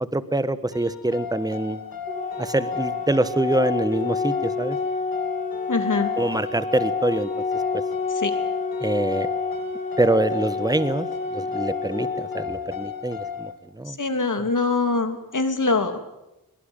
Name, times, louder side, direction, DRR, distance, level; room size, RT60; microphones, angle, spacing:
voice 1, 0.0-1.8 2.4-4.8 6.2-7.3 7.7-7.8 8.8-9.3 10.0-11.1 11.3-13.5 13.8-14.0, right 1 dB, 10° right, 13 dB, 1.3 m, -24 dB
sound 1, 0.7-13.5, left 7 dB, 75° left, 3.2 m, -35 dB
Organ, 2.1-13.1, left 4 dB, 20° left, 2.2 m, -29 dB
voice 2, 5.7-6.1 8.1-8.3 13.9-16.0, left 3 dB, 60° left, 7 dB, 3.2 m, -23 dB
22.0 x 22.0 x 9.0 m, 0.94 s
wide cardioid pair, 100°, 35 cm